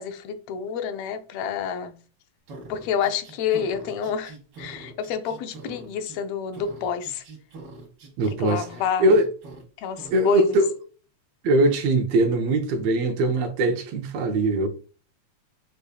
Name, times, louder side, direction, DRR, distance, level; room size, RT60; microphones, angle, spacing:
voice 1, 0.0-2.0 2.7-7.2 8.3-9.1 9.8-10.6, left 7 dB, 75° left, 1.7 m, -28 dB
sound 1, 2.5-6.2 6.5-8.8 9.1-9.6 10.0-10.2, right 2 dB, 50° right, 2.2 m, -43 dB
voice 2, 8.2-8.7 9.0-9.2 10.1-10.7 11.4-14.7, right 1 dB, 75° right, 1.8 m, -21 dB
6.7 x 3.2 x 2.3 m
omnidirectional pair, 3.3 m